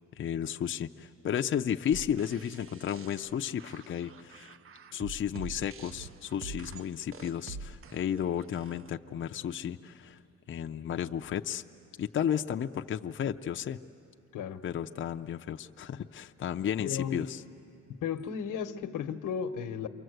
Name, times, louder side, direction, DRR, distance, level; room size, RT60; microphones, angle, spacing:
voice 1, 0.2-4.5 4.9-10.2 10.5-11.6 12.0-13.8 14.6-17.4, left 9 dB, 40° left, 0.5 m, -33 dB
sound 1, 1.9-8.9, right 4 dB, 45° right, 0.6 m, -46 dB
voice 2, 14.3-14.6 16.8-17.3 18.0-19.9, left 7 dB, 80° left, 1.0 m, -34 dB
28.5 x 23.5 x 7.9 m
cardioid pair, 110°, 31 cm